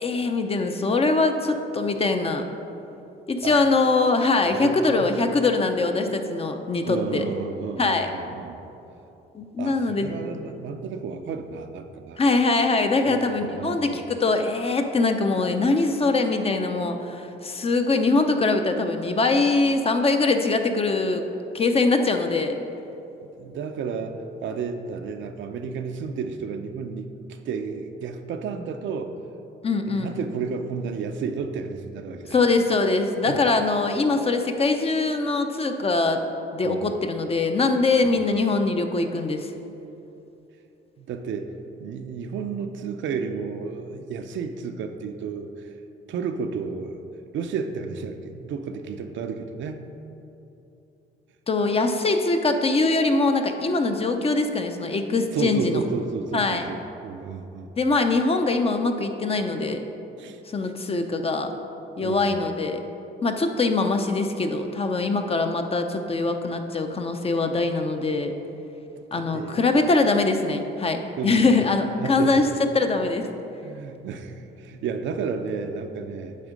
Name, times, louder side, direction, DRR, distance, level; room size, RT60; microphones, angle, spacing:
voice 1, 0.0-2.4 3.3-7.3 7.8-8.1 9.3-10.1 12.2-21.2 21.5-22.5 29.6-30.1 32.3-36.2 36.5-39.5 51.5-55.8 56.3-56.6 57.8-59.8 60.5-61.5 62.0-62.8 63.2-68.4 69.1-72.5 72.7-73.3, left 3 dB, 30° left, 6 dB, 0.5 m, -23 dB
voice 2, 4.4-5.1 6.8-8.6 9.6-12.2 13.0-14.0 23.4-29.2 29.9-32.3 33.3-33.4 36.6-36.9 38.0-38.2 41.0-41.5 41.8-45.7 46.1-47.0 47.3-49.8 55.3-56.8 57.0-57.7 60.2-60.4 62.0-62.3 69.1-69.8 71.2-71.5 72.0-72.5 73.6-76.4, right 5 dB, 70° right, 6 dB, 0.5 m, -32 dB
8.4 x 3.6 x 5.1 m, 2.8 s
cardioid pair, 90°, 20 cm